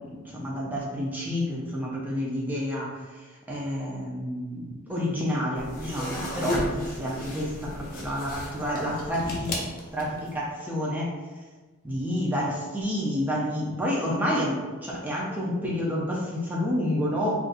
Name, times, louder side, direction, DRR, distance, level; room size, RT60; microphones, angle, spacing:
voice 1, 0.1-9.5 9.9-11.1 11.8-17.3, equal, 10° right, -5 dB, 0.5 m, -29 dB
sound 1, 5.6-10.3, left 1 dB, 40° left, 0.6 m, -33 dB
2.5 x 2.4 x 3.9 m, 1.4 s
head